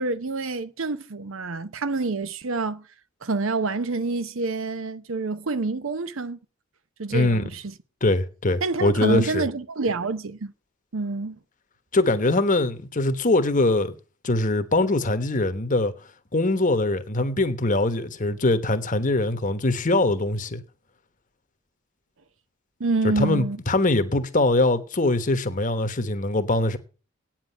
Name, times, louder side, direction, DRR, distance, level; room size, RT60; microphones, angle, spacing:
voice 1, 0.0-2.9 3.2-6.4 7.0-7.7 8.6-10.5 10.9-11.4 22.8-23.6, right 3 dB, 70° right, 0.8 m, -27 dB
voice 2, 7.1-7.5 8.0-9.5 11.9-13.9 14.2-15.9 16.3-20.6 23.0-26.8, left 2 dB, 40° left, 1.2 m, -22 dB
9.2 x 7.5 x 9.1 m
head